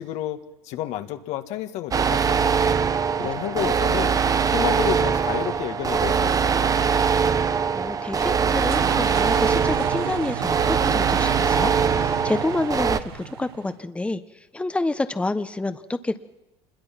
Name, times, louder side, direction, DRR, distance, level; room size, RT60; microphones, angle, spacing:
voice 1, 0.0-2.5 3.2-4.2 4.5-6.8, left 12 dB, 60° left, 8 dB, 1.9 m, -31 dB
sound 1, 1.9-13.0, right 6 dB, 25° right, 1.2 m, -22 dB
voice 2, 7.4-16.2, left 2 dB, 10° left, 10 dB, 1.2 m, -29 dB
sound 2, 8.2-13.8, right 13 dB, 80° right, 1.1 m, -34 dB
26.5 x 21.5 x 6.0 m, 0.97 s
hypercardioid pair, 90°, 13 cm